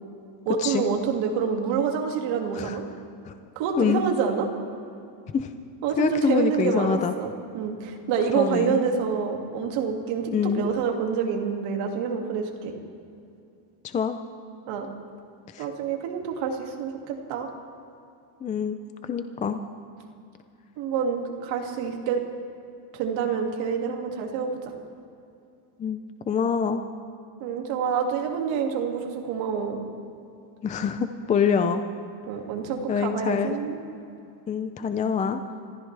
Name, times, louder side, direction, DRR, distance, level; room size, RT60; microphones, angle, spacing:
voice 1, 0.5-2.8 3.6-4.5 5.8-10.3 10.5-12.7 14.7-14.9 15.6-17.5 20.8-22.2 22.9-24.7 27.4-29.8 32.3-33.8, right 6 dB, 70° right, 2 dB, 2.3 m, -27 dB
voice 2, 6.0-7.1 8.3-8.8 10.3-10.7 13.8-14.2 15.5-15.7 18.4-19.6 25.8-26.8 30.6-31.8 32.9-33.6 34.5-35.4, left 6 dB, 20° left, 8 dB, 0.3 m, -25 dB
26.5 x 14.5 x 3.3 m, 2.6 s
cardioid pair, 140°, 48 cm